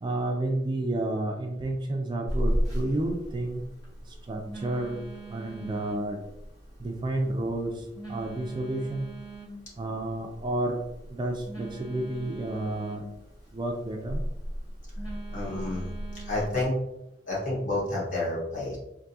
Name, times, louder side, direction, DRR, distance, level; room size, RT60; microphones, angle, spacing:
voice 1, 0.0-3.6 4.0-5.0 5.3-6.2 6.8-9.1 9.8-10.8 11.1-13.0 13.5-14.2, right 1 dB, 25° right, 2 dB, 0.4 m, -31 dB
Telephone, 2.3-16.6, equal, 20° left, 1.3 m, -36 dB
voice 2, 15.3-16.7 17.3-18.8, left 2 dB, 45° left, -5 dB, 1.3 m, -30 dB
3.5 x 2.6 x 2.7 m, 0.88 s
head